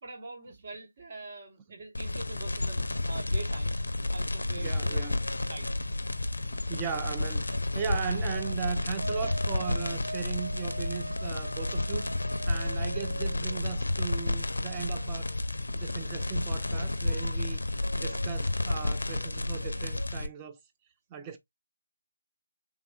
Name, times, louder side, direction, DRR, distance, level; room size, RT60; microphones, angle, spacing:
voice 1, 0.0-3.8 4.1-5.1 5.4-5.7, right 3 dB, 40° right, 1.0 m, -44 dB
sound 1, 1.9-20.3, left 2 dB, 70° left, 0.5 m, -31 dB
voice 2, 4.6-5.2 6.7-15.3 15.7-20.6 21.1-21.4, right 7 dB, 15° right, 0.4 m, -38 dB
sound 2, 5.2-5.8 7.2-8.7 9.0-15.4 16.0-17.5 17.8-18.3 18.9-19.0 19.3-20.1, right 1 dB, 80° right, 0.4 m, -43 dB
3.5 x 2.4 x 2.3 m
figure-of-eight pair, 155°, 0 cm